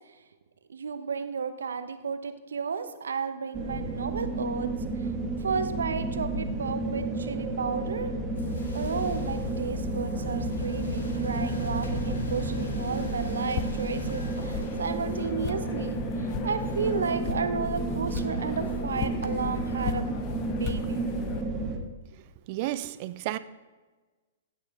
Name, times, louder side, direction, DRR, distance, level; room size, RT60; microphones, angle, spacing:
voice 1, 0.7-4.7 5.0-5.1 5.4-8.1 8.7-20.1 20.6-21.1, right 5 dB, 80° right, 10 dB, 0.9 m, -33 dB
sound 1, 3.5-21.8, right 2 dB, 20° right, 1.5 m, -32 dB
sound 2, 8.3-15.2, left 3 dB, 75° left, 2.2 m, -37 dB
sound 3, 12.7-21.4, left 8 dB, 40° left, 0.7 m, -37 dB
voice 2, 22.5-23.4, right 15 dB, 45° right, 14 dB, 0.5 m, -32 dB
15.0 x 6.6 x 3.5 m, 1.3 s
hypercardioid pair, 120°, 0 cm